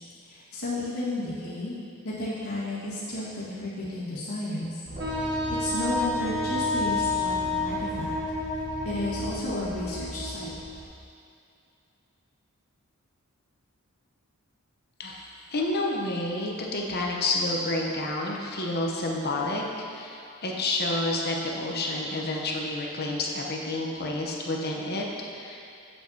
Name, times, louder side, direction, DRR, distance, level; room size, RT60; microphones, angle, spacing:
voice 1, 0.3-1.8 2.0-4.8 5.6-8.1 8.8-10.5, left 1 dB, 80° left, -10 dB, 1.9 m, -32 dB
sound 1, 4.8-10.9, right 1 dB, 25° right, 1.2 m, -40 dB
Wind instrument woodwind instrument, 5.0-10.8, left 2 dB, 50° right, 0.8 m, -30 dB
voice 2, 15.0-25.0 25.3-25.6, left 2 dB, 45° left, -1 dB, 0.9 m, -29 dB
8.3 x 7.3 x 2.8 m, 2.5 s
head